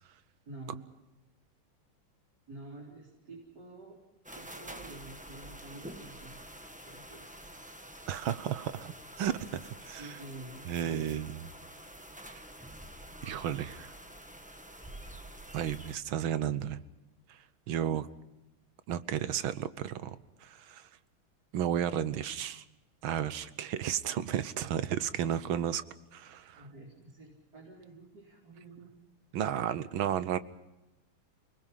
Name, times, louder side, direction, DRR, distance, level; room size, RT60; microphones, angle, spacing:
voice 1, 0.5-0.9 2.5-4.0 4.3-6.4 6.8-7.3 10.0-11.2 26.5-29.0, right 2 dB, 50° right, -3 dB, 4.6 m, -48 dB
sound 1, 4.2-15.9, right 1 dB, 5° right, 1.1 m, -48 dB
voice 2, 8.1-10.1 10.7-11.5 13.2-13.9 15.5-16.8 17.3-17.4 17.7-18.1 18.9-20.9 21.5-22.6 23.0-25.8 26.1-26.7 29.3-30.4, right 10 dB, 75° right, 14 dB, 1.7 m, -33 dB
29.0 x 20.0 x 5.7 m, 1.0 s
omnidirectional pair, 2.3 m